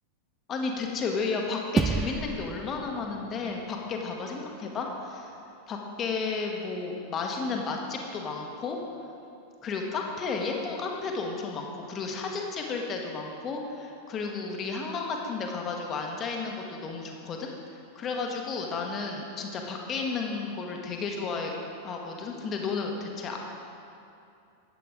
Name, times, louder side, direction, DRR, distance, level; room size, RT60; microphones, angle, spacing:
voice 1, 0.5-5.3 5.7-8.8 9.6-17.5 17.9-21.5 21.8-23.4, left 4 dB, 30° left, 1 dB, 1.3 m, -32 dB
sound 1, 1.8-4.4, right 4 dB, 15° right, 0.3 m, -31 dB
11.5 x 8.4 x 5.0 m, 2.6 s
figure-of-eight pair, 90°, 0 cm